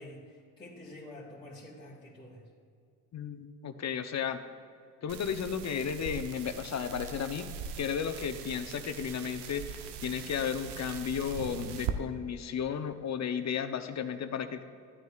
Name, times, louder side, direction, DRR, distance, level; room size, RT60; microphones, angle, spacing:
voice 1, 0.0-2.5, left 1 dB, 10° left, -8 dB, 2.2 m, -48 dB
voice 2, 3.1-4.4 5.0-7.5 7.8-14.6, left 7 dB, 40° left, 9 dB, 0.7 m, -34 dB
sound 1, 5.1-11.9, right 8 dB, 65° right, 0.8 m, -41 dB
13.5 x 9.2 x 2.4 m, 2.4 s
supercardioid pair, 65°, 44 cm